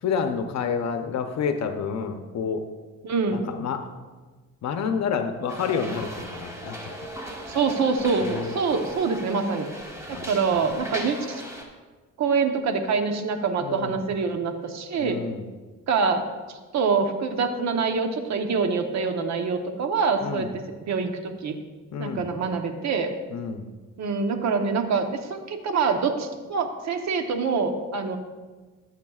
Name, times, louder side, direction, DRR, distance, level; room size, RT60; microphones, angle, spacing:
voice 1, 0.0-2.6 3.3-3.9 4.6-7.1 8.2-8.5 10.1-10.6 13.6-14.0 15.0-15.5 20.2-20.5 21.9-22.3 23.3-23.7, left 6 dB, 60° left, 6 dB, 0.8 m, -29 dB
voice 2, 3.0-3.4 7.5-9.7 10.1-11.4 12.2-15.2 15.9-16.2 16.7-21.6 22.0-23.1 24.0-28.2, right 5 dB, 65° right, 6 dB, 1.1 m, -25 dB
sound 1, 5.5-11.6, equal, 10° right, 1.7 m, -38 dB
13.5 x 8.0 x 2.4 m, 1.3 s
cardioid pair, 90°, 30 cm